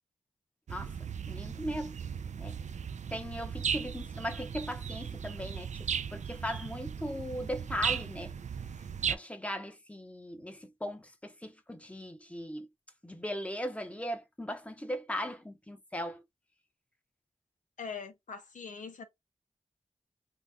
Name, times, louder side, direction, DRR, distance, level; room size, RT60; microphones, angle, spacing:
sound 1, 0.7-9.2, right 7 dB, 70° right, 0.4 m, -37 dB
voice 1, 1.3-1.9 2.4-2.6 3.1-8.3 9.1-12.7 13.0-16.2, equal, 10° left, 0.9 m, -38 dB
voice 2, 17.8-19.0, left 5 dB, 80° left, 0.7 m, -42 dB
2.9 x 2.5 x 3.5 m
cardioid pair, 45°, 13 cm